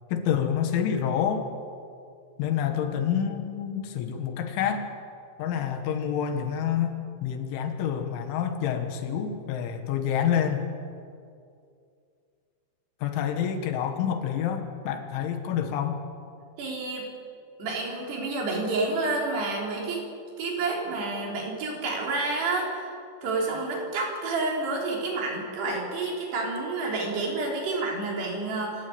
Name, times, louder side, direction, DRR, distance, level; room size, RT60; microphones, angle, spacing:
voice 1, 0.1-1.5 2.4-4.9 5.4-10.7 13.0-16.0, left 8 dB, 85° left, 6 dB, 4.0 m, -28 dB
voice 2, 16.6-17.1 17.6-20.1 20.4-22.7 23.2-28.9, right 3 dB, 60° right, -2 dB, 5.7 m, -29 dB
27.0 x 12.5 x 8.7 m, 2.4 s
omnidirectional pair, 5.4 m